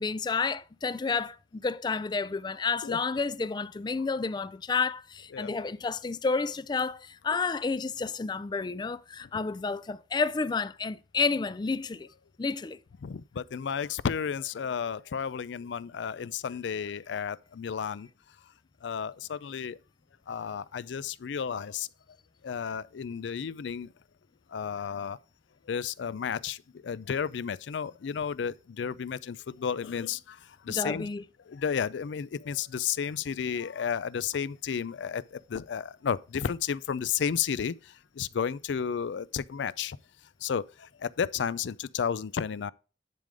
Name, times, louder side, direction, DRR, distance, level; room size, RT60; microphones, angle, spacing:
voice 1, 0.0-12.1 12.4-12.8 30.7-31.2, left 4 dB, 25° left, 0.3 m, -30 dB
voice 2, 5.3-5.7 9.3-9.4 13.0-18.1 18.8-19.8 20.3-21.9 22.4-23.9 24.5-25.2 25.7-31.1 31.5-40.0 40.4-42.7, left 7 dB, 90° left, 0.4 m, -32 dB
10.5 x 3.8 x 5.0 m
head